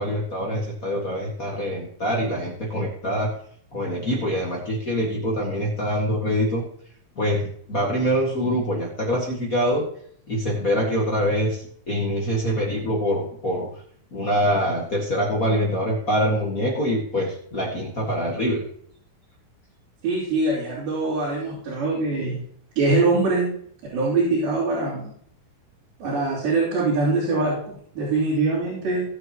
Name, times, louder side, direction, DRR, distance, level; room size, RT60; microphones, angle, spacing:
voice 1, 0.0-3.3 3.7-6.6 7.2-9.8 10.3-13.7 14.1-18.6, equal, 40° left, -2 dB, 1.3 m, -24 dB
voice 2, 20.0-22.4 22.8-23.5 23.9-25.1 26.0-29.0, right 3 dB, 80° right, -10 dB, 5.1 m, -23 dB
18.0 x 6.9 x 3.0 m, 0.63 s
omnidirectional pair, 4.3 m